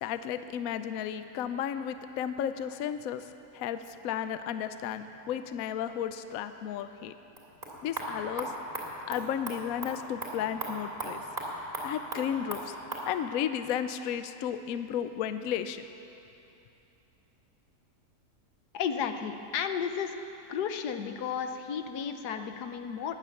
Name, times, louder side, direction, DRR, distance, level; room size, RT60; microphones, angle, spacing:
voice 1, 0.0-7.1 7.8-8.5 9.1-11.2 11.8-12.7 13.1-15.9, left 9 dB, 70° left, 10 dB, 1.0 m, -33 dB
sound 1, 7.2-13.1, right 1 dB, 25° right, 2.8 m, -38 dB
voice 2, 18.7-20.1 20.5-23.1, left 7 dB, 85° left, 8 dB, 1.4 m, -33 dB
20.0 x 9.3 x 7.1 m, 2.9 s
omnidirectional pair, 1.7 m